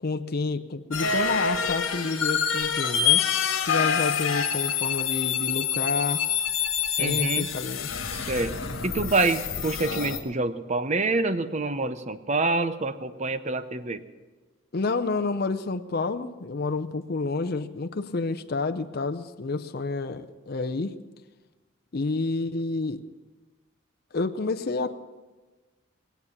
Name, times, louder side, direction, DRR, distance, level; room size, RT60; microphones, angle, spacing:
voice 1, 0.0-3.2 3.6-6.3 6.9-7.9 14.7-20.9 21.9-23.0 24.1-24.9, left 3 dB, 50° left, 7 dB, 0.6 m, -29 dB
sound 1, 0.9-10.2, left 7 dB, 80° left, 1.6 m, -26 dB
voice 2, 7.0-7.5 8.1-8.5 8.8-14.0, right 3 dB, 35° right, 12 dB, 0.7 m, -27 dB
21.0 x 8.1 x 7.1 m, 1.3 s
head